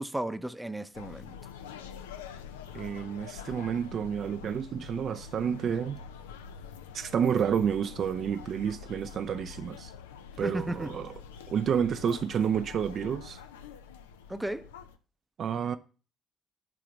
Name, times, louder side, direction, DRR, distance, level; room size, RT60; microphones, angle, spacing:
voice 1, 0.0-1.3 10.4-10.9 14.3-14.7, right 1 dB, 10° right, 0.6 m, -34 dB
sound 1, 0.9-15.0, left 7 dB, 80° left, 0.4 m, -46 dB
voice 2, 2.7-6.0 6.9-9.9 10.4-11.2 11.5-13.4 15.4-15.8, right 8 dB, 55° right, 0.4 m, -30 dB
6.1 x 3.9 x 5.9 m
figure-of-eight pair, 45°, 0 cm